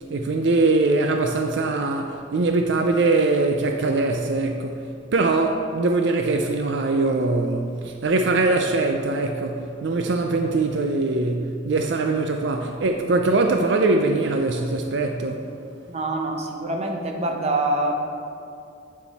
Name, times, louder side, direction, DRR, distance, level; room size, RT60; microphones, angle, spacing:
voice 1, 0.1-15.5, right 3 dB, 65° right, 4 dB, 0.4 m, -22 dB
voice 2, 15.9-17.9, right 2 dB, 30° right, 2 dB, 0.8 m, -25 dB
8.7 x 7.1 x 4.1 m, 2.6 s
head